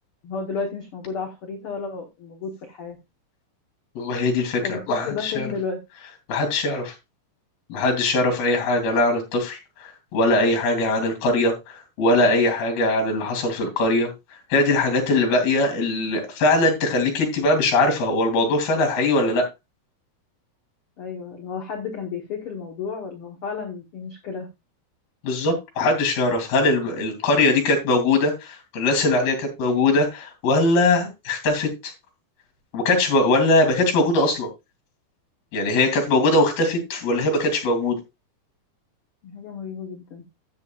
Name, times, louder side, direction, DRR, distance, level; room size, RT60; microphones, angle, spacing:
voice 1, 0.2-3.0 4.6-5.8 21.0-24.5 39.2-40.2, left 5 dB, 60° left, 1.5 m, -32 dB
voice 2, 4.0-5.5 6.3-6.9 7.7-14.1 14.5-19.4 25.2-31.9 32.7-34.5 35.5-38.0, left 2 dB, 75° left, 5.0 m, -21 dB
13.5 x 8.7 x 2.4 m
omnidirectional pair, 4.4 m